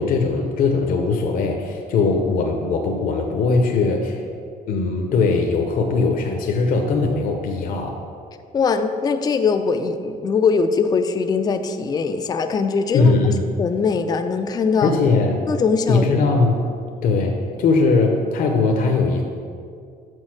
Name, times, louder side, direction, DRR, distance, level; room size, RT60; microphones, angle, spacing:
voice 1, 0.0-4.2 4.7-8.0 12.9-13.5 14.8-15.4 15.9-16.6 17.0-19.2, left 3 dB, 55° left, 2 dB, 0.7 m, -20 dB
voice 2, 8.5-13.1 13.6-14.9 15.5-16.1, left 5 dB, 25° left, 8 dB, 0.4 m, -21 dB
6.3 x 4.0 x 6.2 m, 2.3 s
cardioid pair, 110°, 17 cm